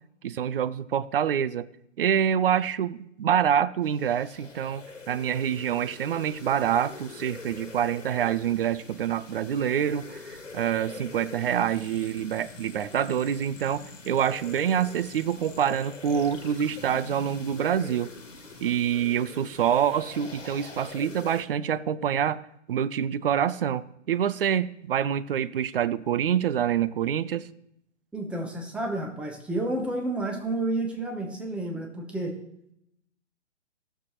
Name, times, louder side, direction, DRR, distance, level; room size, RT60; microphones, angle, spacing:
voice 1, 0.2-1.7 2.0-18.1 18.6-22.4 22.7-27.5, right 9 dB, 50° right, 16 dB, 0.4 m, -26 dB
sound 1, 3.8-21.4, left 3 dB, 80° left, 1.4 m, -45 dB
sound 2, 11.7-17.5, left 5 dB, 50° left, 1.4 m, -50 dB
voice 2, 28.1-32.4, right 2 dB, 5° right, 2 dB, 0.8 m, -30 dB
15.5 x 6.7 x 3.0 m, 0.78 s
figure-of-eight pair, 125°, 37 cm